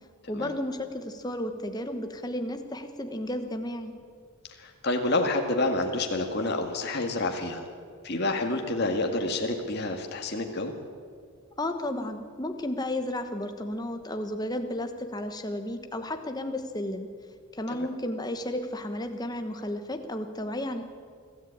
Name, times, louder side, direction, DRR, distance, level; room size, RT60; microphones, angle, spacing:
voice 1, 0.3-3.9 11.6-17.1 17.5-20.9, left 1 dB, 20° left, 6 dB, 1.2 m, -33 dB
voice 2, 4.6-7.6 8.0-10.7 17.7-17.9, left 2 dB, 50° left, 3 dB, 1.9 m, -28 dB
24.5 x 14.0 x 8.8 m, 2.1 s
head